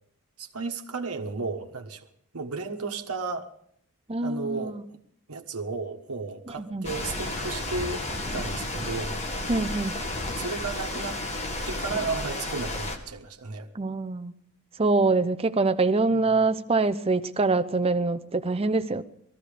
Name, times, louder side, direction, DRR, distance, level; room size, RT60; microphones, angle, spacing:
voice 1, 0.4-2.1 2.3-3.5 4.2-4.8 5.3-9.2 10.4-11.2 11.6-13.7 16.1-16.5, right 4 dB, 85° right, 4 dB, 1.3 m, -34 dB
voice 2, 4.1-4.8 6.6-6.9 9.5-10.0 13.7-14.3 14.8-19.0, right 3 dB, 25° right, 10 dB, 0.6 m, -24 dB
sound 1, 6.8-13.0, left 1 dB, 30° left, 1.6 m, -32 dB
19.0 x 14.5 x 5.0 m, 0.67 s
head